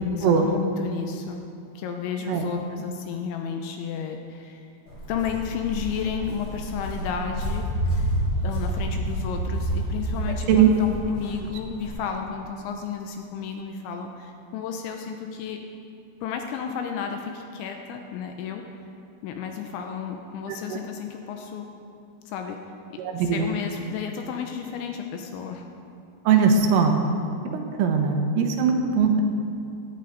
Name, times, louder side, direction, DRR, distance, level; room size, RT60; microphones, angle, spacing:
voice 1, 0.1-1.4 1.8-4.7 5.1-8.1 8.4-15.6 16.2-18.6 19.2-21.7 22.3-22.6 22.9-25.7, left 7 dB, 85° left, 4 dB, 2.8 m, -32 dB
Walk footsteps, 4.9-11.9, right 1 dB, 35° left, 4.7 m, -29 dB
voice 2, 20.5-20.8 23.0-23.5 26.3-27.0 27.5-29.2, right 6 dB, 80° right, 4 dB, 3.6 m, -20 dB
18.0 x 12.5 x 4.0 m, 2.5 s
omnidirectional pair, 5.8 m